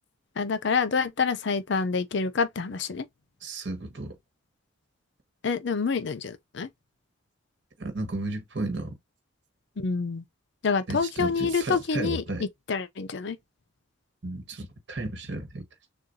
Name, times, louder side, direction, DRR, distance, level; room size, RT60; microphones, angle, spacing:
voice 1, 0.4-3.1 5.4-6.7 9.8-10.3 10.6-13.4, left 5 dB, 60° left, 0.5 m, -27 dB
voice 2, 3.4-4.2 7.8-9.0 10.9-12.4 14.2-15.6, right 2 dB, 55° right, 1.4 m, -33 dB
6.6 x 2.3 x 2.6 m
head